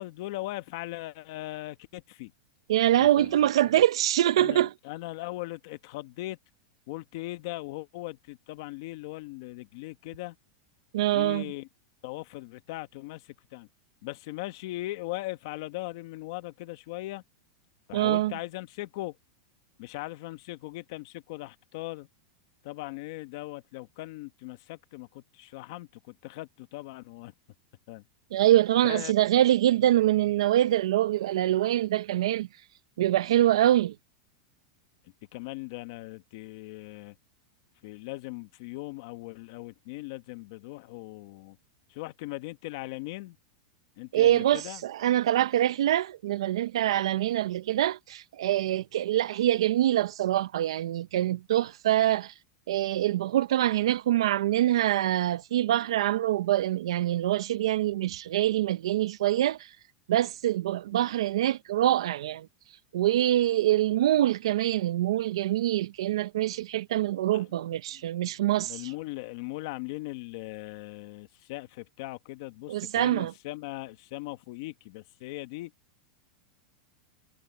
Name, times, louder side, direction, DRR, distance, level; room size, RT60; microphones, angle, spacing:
voice 1, 0.0-2.3 3.0-3.5 4.4-6.4 6.9-10.4 11.1-11.7 12.0-13.7 14.0-17.2 17.9-19.2 19.8-22.1 22.6-27.3 27.9-28.0 28.8-29.1 35.3-37.1 37.8-41.6 41.9-43.4 44.0-44.8 67.3-68.0 68.5-75.7, left 19 dB, 50° left, 1.2 m, -39 dB
voice 2, 2.7-4.7 10.9-11.5 17.9-18.3 28.3-32.5 33.0-33.9 44.1-52.3 52.7-59.8 60.1-62.5 62.9-68.9 72.7-73.3, right 13 dB, 85° right, 0.5 m, -25 dB
supercardioid pair, 165°, 3 cm